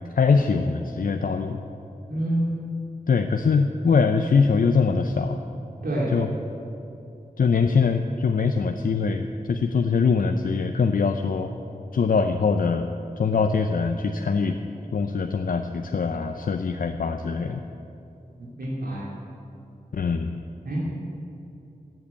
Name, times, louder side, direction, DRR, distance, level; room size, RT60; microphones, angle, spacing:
voice 1, 0.2-1.6 3.1-5.4 6.1-6.3 7.4-11.5 11.9-12.9 13.2-14.6 14.9-17.6 19.9-20.4, left 5 dB, 65° left, 6 dB, 0.6 m, -22 dB
voice 2, 2.1-2.5 5.8-6.1 18.4-19.0 20.6-20.8, right 1 dB, 80° right, -6 dB, 2.7 m, -27 dB
15.0 x 7.9 x 8.5 m, 2.8 s
wide cardioid pair, 90°, 15 cm